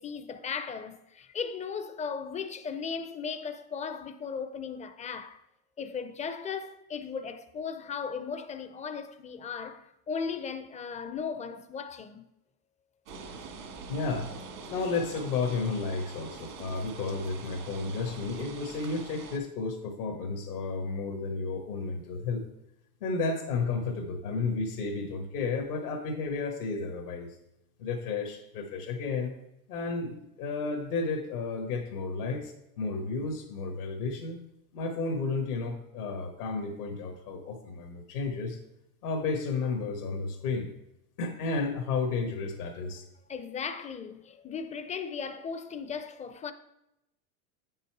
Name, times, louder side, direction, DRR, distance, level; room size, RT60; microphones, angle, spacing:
voice 1, 0.0-5.4 5.8-12.3 43.3-46.5, left 6 dB, 15° left, 0.4 m, -37 dB
sound 1, 13.1-19.4, right 4 dB, 80° right, 1.7 m, -44 dB
voice 2, 13.9-14.3 14.7-22.5 23.0-27.4 27.8-29.3 29.7-34.4 34.7-38.6 39.0-40.7 41.2-43.0, left 4 dB, 85° left, 1.4 m, -32 dB
8.5 x 5.5 x 4.6 m
hypercardioid pair, 105°, 44 cm